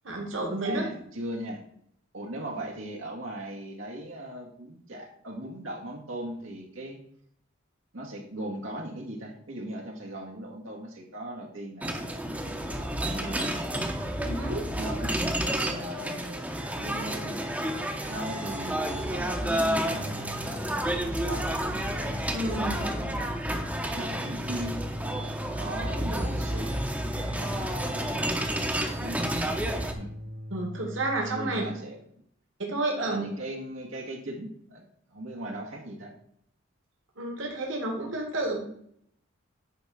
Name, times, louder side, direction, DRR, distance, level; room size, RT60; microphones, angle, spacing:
voice 1, 0.0-0.9 14.2-14.7 22.3-22.8 30.5-31.6 32.6-33.2 37.2-38.6, right 2 dB, 70° right, 1 dB, 1.9 m, -30 dB
voice 2, 0.6-1.6 2.1-7.0 7.9-12.0 12.7-13.6 14.7-15.1 15.4-16.4 16.7-17.6 18.0-21.5 22.5-23.2 24.0-24.8 25.6-26.7 27.3-28.5 29.0-29.3 29.9-30.1 31.3-32.0 33.0-34.9 35.1-36.1, right 1 dB, 90° right, -1 dB, 1.9 m, -38 dB
sound 1, 11.8-29.9, right 1 dB, 5° right, 0.8 m, -30 dB
sound 2, 19.9-31.8, left 1 dB, 45° right, 0.7 m, -40 dB
9.6 x 3.7 x 7.0 m, 0.68 s
head